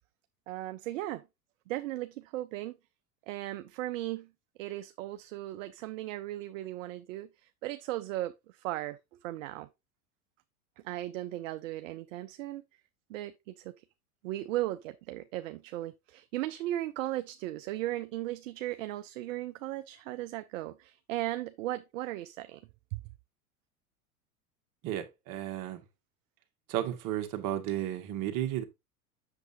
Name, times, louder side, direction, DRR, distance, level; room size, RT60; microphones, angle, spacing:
voice 1, 0.5-1.2 1.7-2.7 3.3-4.3 4.6-7.3 7.6-9.0 9.2-9.7 10.8-12.6 13.1-13.7 14.2-22.6 22.9-23.0, right 15 dB, 65° right, 0.7 m, -36 dB
voice 2, 24.8-25.8 26.7-28.6, right 12 dB, 45° right, 1.6 m, -33 dB
7.9 x 6.8 x 2.7 m
hypercardioid pair, 95°, 43 cm